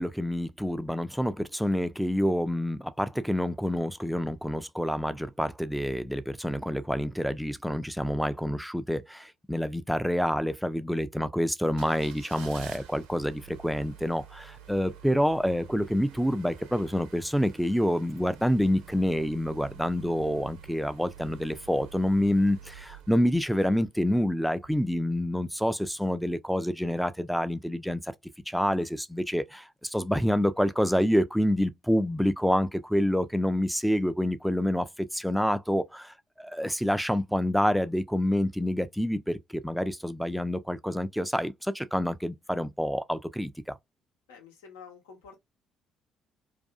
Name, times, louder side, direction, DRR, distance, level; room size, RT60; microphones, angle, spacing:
voice 1, 0.0-28.1 28.5-43.5, equal, ahead, 0.4 m, -27 dB
sound 1, 11.6-24.1 24.6-24.7, right 8 dB, 75° right, 0.6 m, -49 dB
voice 2, 44.3-45.4, left 6 dB, 75° left, 0.8 m, -49 dB
2.6 x 2.3 x 2.2 m
figure-of-eight pair, 50°, 0 cm